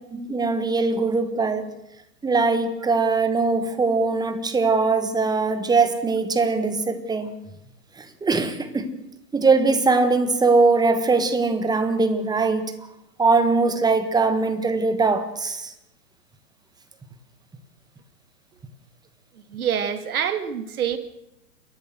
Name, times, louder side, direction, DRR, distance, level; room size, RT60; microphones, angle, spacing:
voice 1, 0.1-1.7 2.2-7.3 8.0-8.9 9.3-12.7 13.2-15.7, right 3 dB, 10° right, 1.6 m, -21 dB
voice 2, 19.5-21.0, right 8 dB, 65° right, 2.2 m, -26 dB
29.0 x 13.5 x 6.5 m
figure-of-eight pair, 115°, 47 cm